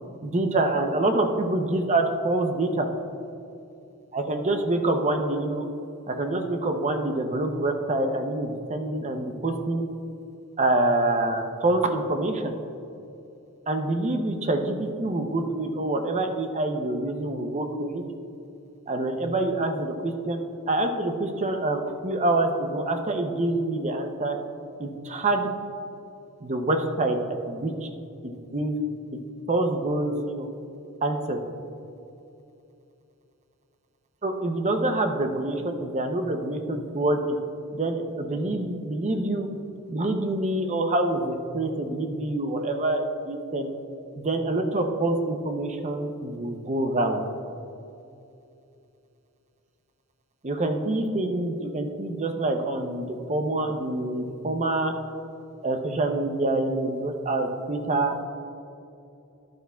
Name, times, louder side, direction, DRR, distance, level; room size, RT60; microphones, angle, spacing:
voice 1, 0.2-2.9 4.1-5.6 6.1-9.8 10.6-12.5 13.7-18.0 18.9-20.4 20.7-24.4 24.8-25.5 26.4-27.9 28.2-28.8 29.5-30.5 31.0-31.4 34.2-37.4 37.7-39.5 39.9-43.7 44.2-47.2 50.4-54.9 55.6-58.2, right 2 dB, 30° right, 5 dB, 0.7 m, -26 dB
11.0 x 10.5 x 2.3 m, 2.8 s
head